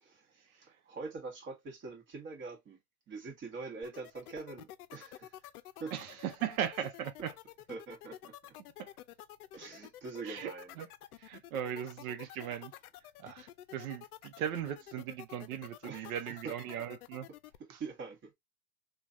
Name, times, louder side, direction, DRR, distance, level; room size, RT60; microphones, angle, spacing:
voice 1, 0.0-2.8 3.1-5.4 5.8-5.9 7.7-8.5 9.5-10.8 15.9-16.5 17.8-18.3, right 4 dB, 25° right, 1.1 m, -44 dB
sound 1, 3.8-17.6, left 13 dB, 80° left, 0.5 m, -50 dB
voice 2, 5.9-7.3 8.8-8.9 10.2-10.9 11.2-12.7 13.2-17.3 17.7-17.8, right 9 dB, 70° right, 0.7 m, -38 dB
3.2 x 2.3 x 2.5 m
hypercardioid pair, 110°, 44 cm